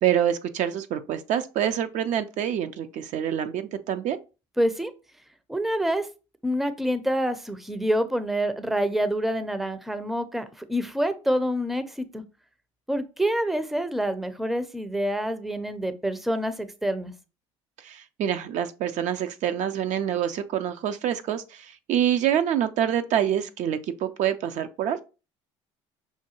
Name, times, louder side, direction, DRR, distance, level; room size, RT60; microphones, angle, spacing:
voice 1, 0.0-4.2 17.8-25.0, right 10 dB, 55° right, 0.4 m, -26 dB
voice 2, 4.6-4.9 5.5-6.1 6.4-12.2 12.9-17.1, equal, ahead, 0.5 m, -27 dB
5.6 x 2.2 x 2.9 m
hypercardioid pair, 65°, 15 cm